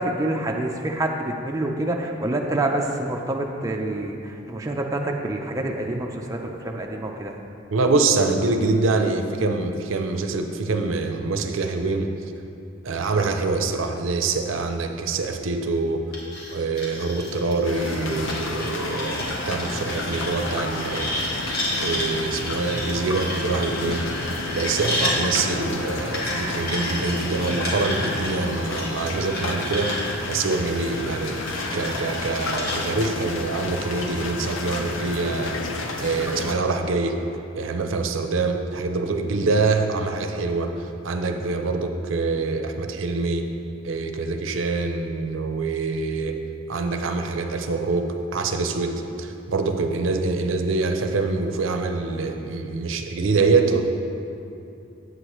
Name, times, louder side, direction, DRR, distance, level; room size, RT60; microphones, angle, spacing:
voice 1, 0.0-7.4, right 1 dB, 15° right, 0 dB, 0.4 m, -27 dB
voice 2, 7.7-12.1 12.8-16.0 16.5-21.1 21.8-24.1 24.5-29.9 30.3-31.4 31.7-35.6 36.0-37.2 37.6-43.5 43.8-46.4 46.7-53.8, right 3 dB, 80° right, 6 dB, 0.5 m, -25 dB
sound 1, 16.1-25.1 26.1-32.8, left 1 dB, 50° left, 1.5 m, -32 dB
sound 2, 17.6-36.5, left 2 dB, 75° left, 0.6 m, -31 dB
8.0 x 7.8 x 3.0 m, 2.6 s
head